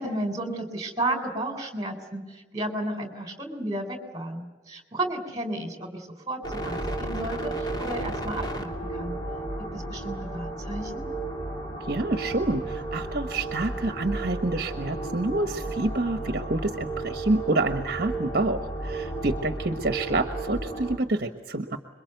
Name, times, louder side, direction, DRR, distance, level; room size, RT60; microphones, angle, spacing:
voice 1, 0.0-9.2 9.6-11.0, right 1 dB, 20° right, 6 dB, 3.9 m, -33 dB
sound 1, 6.4-21.0, right 2 dB, 25° left, 3.1 m, -33 dB
voice 2, 11.9-21.8, right 2 dB, 50° right, 7 dB, 1.3 m, -28 dB
27.0 x 23.0 x 8.0 m, 1.2 s
head